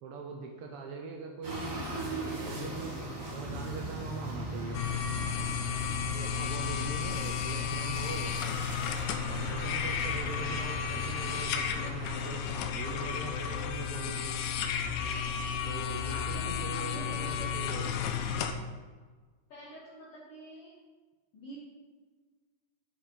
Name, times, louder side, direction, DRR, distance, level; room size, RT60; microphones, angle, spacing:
voice 1, 0.0-1.7 2.5-3.0 3.3-4.8 6.1-8.3 9.3-12.4 12.7-14.4 15.6-18.0, right 4 dB, 80° right, 2 dB, 1.2 m, -42 dB
sound 1, 1.4-12.4, right 1 dB, 30° right, 1.9 m, -40 dB
sound 2, 1.9-9.0, right 3 dB, 65° right, 2.6 m, -54 dB
sound 3, 4.7-18.5, left 7 dB, 85° left, 2.0 m, -33 dB
voice 2, 6.7-7.3 16.1-17.6 19.5-20.7 21.3-21.6, equal, 60° left, -6 dB, 2.0 m, -47 dB
8.5 x 5.5 x 5.0 m, 1.4 s
omnidirectional pair, 3.4 m